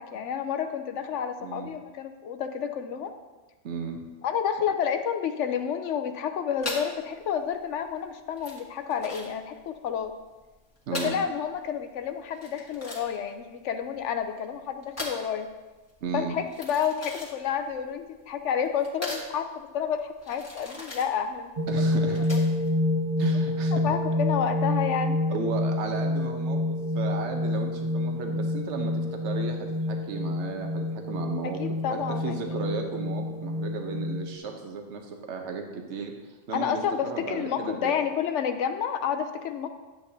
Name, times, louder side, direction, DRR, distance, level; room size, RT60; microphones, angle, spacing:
voice 1, 0.0-3.1 4.2-10.1 11.0-15.5 16.1-21.8 22.3-22.4 23.8-25.2 31.4-32.6 36.5-39.7, left 8 dB, 85° left, 8 dB, 1.0 m, -30 dB
voice 2, 1.4-1.7 3.6-4.0 10.9-11.2 16.0-16.4 21.7-22.3 23.2-23.8 25.3-31.6 31.9-37.9, right 4 dB, 75° right, 3 dB, 1.2 m, -35 dB
sound 1, 6.6-22.7, left 1 dB, 15° left, 1.6 m, -40 dB
sound 2, 21.6-34.4, left 1 dB, 35° right, 0.8 m, -28 dB
11.0 x 8.1 x 2.7 m, 1.2 s
omnidirectional pair, 1.2 m